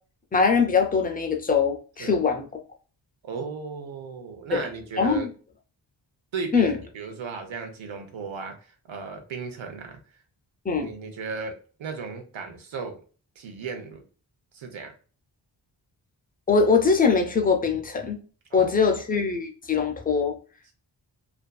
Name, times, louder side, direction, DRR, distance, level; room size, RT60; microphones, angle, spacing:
voice 1, 0.3-2.5 4.5-4.6 5.0-5.3 6.5-6.8 10.7-10.9 16.5-18.2 18.5-20.4, left 5 dB, 20° left, 0.3 m, -22 dB
voice 2, 3.2-5.3 6.3-10.0 10.8-13.0 13.4-14.0 14.5-14.9 18.5-18.9, right 4 dB, 90° right, 0.8 m, -36 dB
2.5 x 2.2 x 2.2 m
wide cardioid pair, 180°, 45 cm